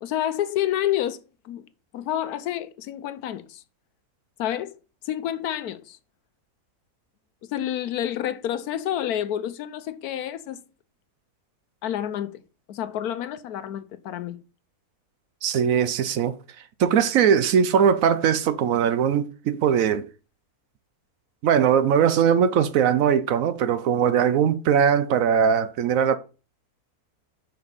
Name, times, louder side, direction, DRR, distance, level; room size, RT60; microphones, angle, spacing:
voice 1, 0.0-1.6 1.9-3.6 4.4-4.7 5.0-6.0 7.5-10.6 11.8-12.4 12.7-14.4, left 11 dB, 80° left, 1.1 m, -29 dB
voice 2, 15.4-16.4 16.8-20.1 21.4-26.2, right 8 dB, 70° right, 1.0 m, -20 dB
5.8 x 5.2 x 5.4 m
omnidirectional pair, 1.6 m